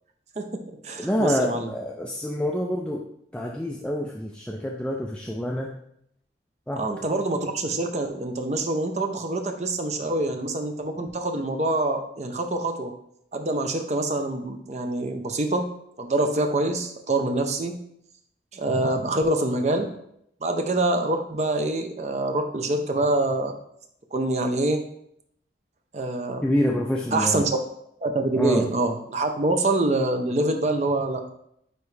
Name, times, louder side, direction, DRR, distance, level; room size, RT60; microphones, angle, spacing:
voice 1, 0.4-1.7 6.8-12.9 13.3-15.7 16.0-17.8 18.5-19.9 20.4-23.5 24.1-24.8 25.9-26.4 27.1-27.6 28.0-31.3, right 2 dB, 40° right, 5 dB, 0.6 m, -25 dB
voice 2, 1.0-3.0 3.3-5.7 6.7-6.8 26.4-27.4 28.4-28.6, equal, 5° left, -1 dB, 0.4 m, -27 dB
9.3 x 3.1 x 3.3 m, 0.73 s
head